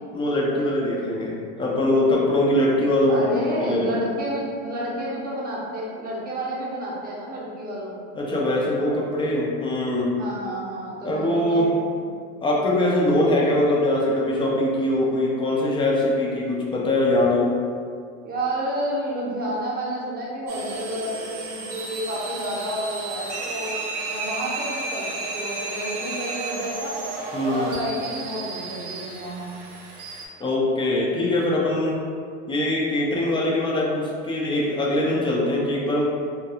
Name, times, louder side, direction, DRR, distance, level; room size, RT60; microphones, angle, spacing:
voice 1, 0.1-4.0 8.2-10.1 11.0-11.7 12.4-17.6 27.3-27.7 30.4-32.0 32.5-36.0, left 1 dB, 15° left, -4 dB, 0.4 m, -22 dB
voice 2, 3.1-8.0 8.5-8.6 10.2-11.6 12.0-12.1 18.2-26.9 27.5-29.5, right 1 dB, 25° right, -5 dB, 0.7 m, -30 dB
sound 1, 20.5-30.3, right 3 dB, 70° right, 0.7 m, -33 dB
2.4 x 2.2 x 2.7 m, 2.2 s
supercardioid pair, 110°, 37 cm